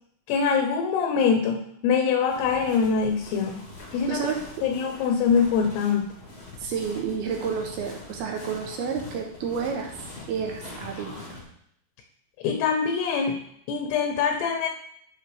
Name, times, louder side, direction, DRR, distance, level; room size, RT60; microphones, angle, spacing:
voice 1, 0.3-3.6 3.9-4.3 4.6-6.1 12.4-13.4 13.7-14.7, left 6 dB, 80° left, 4 dB, 2.6 m, -24 dB
sound 1, 2.3-11.4, left 2 dB, 55° left, 1.0 m, -43 dB
voice 2, 4.1-4.4 6.6-9.9 10.3-11.4, right 6 dB, 75° right, 1 dB, 2.5 m, -30 dB
10.5 x 5.5 x 3.4 m, 0.71 s
omnidirectional pair, 5.0 m